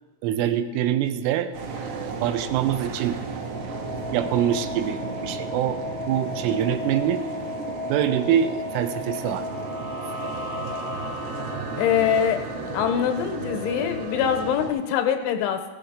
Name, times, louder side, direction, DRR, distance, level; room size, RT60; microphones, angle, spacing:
voice 1, 0.2-3.2 4.1-7.2 7.9-9.5 9.9-10.0, right 10 dB, 85° right, 10 dB, 3.1 m, -25 dB
sound 1, 1.5-14.7, right 1 dB, 70° right, 3.3 m, -32 dB
voice 2, 11.8-12.4 12.7-15.7, left 9 dB, 85° left, 6 dB, 3.1 m, -23 dB
16.0 x 7.9 x 4.9 m, 1.2 s
omnidirectional pair, 5.6 m